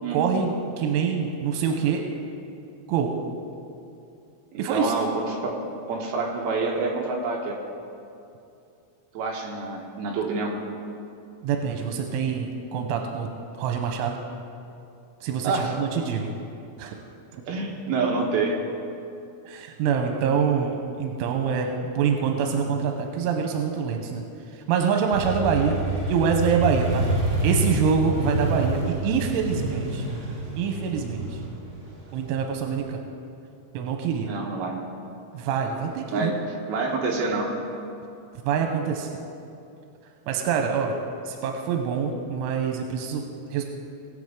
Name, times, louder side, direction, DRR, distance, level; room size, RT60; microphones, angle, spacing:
voice 1, 0.1-2.0 2.9-3.1 4.6-4.9 11.4-13.3 13.6-14.2 15.2-16.3 16.8-16.9 17.3-17.4 19.5-24.2 24.5-30.0 30.6-31.4 32.1-33.0 33.7-34.3 35.3-36.3 38.4-39.1 40.3-40.9 41.3-43.2 43.5-43.6, right 6 dB, 90° right, 3 dB, 3.1 m, -25 dB
voice 2, 4.5-5.6 5.9-7.6 9.1-10.5 15.4-15.7 17.5-18.6 34.2-34.8 36.1-36.3 36.7-37.5, right 3 dB, 70° right, -1 dB, 2.5 m, -27 dB
Motorcycle, 25.1-32.8, right 2 dB, 45° right, 3.9 m, -28 dB
20.5 x 7.9 x 3.6 m, 2.6 s
omnidirectional pair, 5.6 m